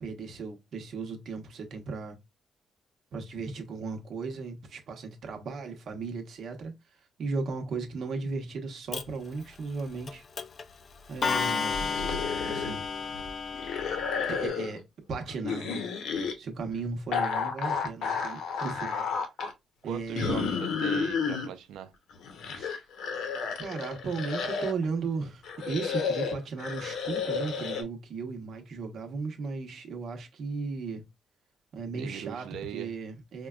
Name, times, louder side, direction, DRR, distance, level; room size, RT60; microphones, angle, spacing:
voice 1, 0.0-2.2 3.1-6.7 7.2-10.2 11.1-11.9 12.4-12.8 14.3-14.8 15.1-15.8 16.4-19.1 19.8-20.5 22.5-22.8 23.6-31.0 31.7-33.5, right 4 dB, 60° right, 0.9 m, -36 dB
Clock, 8.9-9.0 10.1-10.2 10.4-10.6 11.2-14.5, left 5 dB, 40° left, 0.3 m, -32 dB
sound 1, 11.7-12.8 13.1-14.8 15.4-16.3 17.1-19.5 20.2-21.5 22.1-24.8 25.4-27.8, left 5 dB, 80° left, 0.8 m, -31 dB
voice 2, 19.8-21.9 31.9-33.0, right 9 dB, 90° right, 0.5 m, -40 dB
4.5 x 2.2 x 2.3 m
cardioid pair, 120°, 0 cm